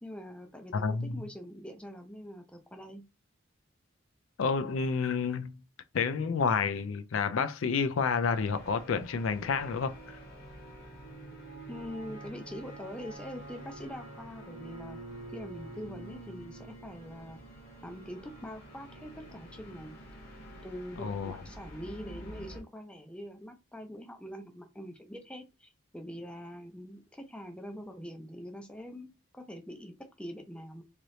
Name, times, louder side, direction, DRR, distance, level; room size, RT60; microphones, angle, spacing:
voice 1, 0.0-3.0 11.7-15.0 15.3-17.4 17.8-20.0 20.6-30.8, equal, 5° left, 0.5 m, -44 dB
voice 2, 0.7-1.3 4.4-5.6 5.9-10.2 21.0-21.4, left 5 dB, 75° left, 0.4 m, -30 dB
sound 1, 8.3-22.6, right 1 dB, 50° left, 1.2 m, -47 dB
3.2 x 2.9 x 2.6 m
head